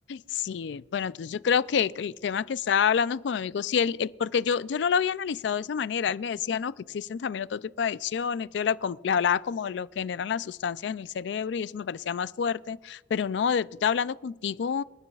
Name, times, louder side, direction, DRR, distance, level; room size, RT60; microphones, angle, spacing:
voice 1, 0.1-14.8, left 7 dB, 70° left, 0.4 m, -28 dB
28.0 x 9.8 x 2.4 m
head